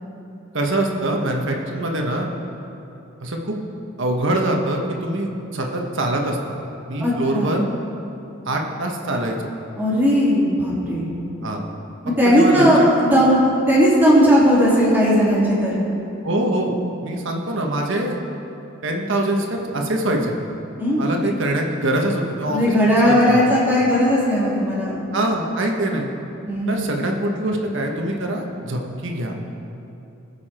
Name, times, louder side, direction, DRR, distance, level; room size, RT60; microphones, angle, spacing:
voice 1, 0.5-2.3 3.2-3.6 4.0-6.6 6.9-7.6 8.4-9.5 11.4-11.6 12.2-12.7 16.2-16.7 17.0-18.2 18.8-20.3 21.0-23.4 25.1-26.1 26.7-29.3, right 1 dB, 65° right, 1 dB, 1.4 m, -24 dB
voice 2, 7.0-7.7 9.8-11.1 12.0-15.8 20.8-21.2 22.4-25.0 26.5-26.9, equal, 10° right, -8 dB, 3.1 m, -17 dB
20.0 x 7.2 x 4.4 m, 2.9 s
head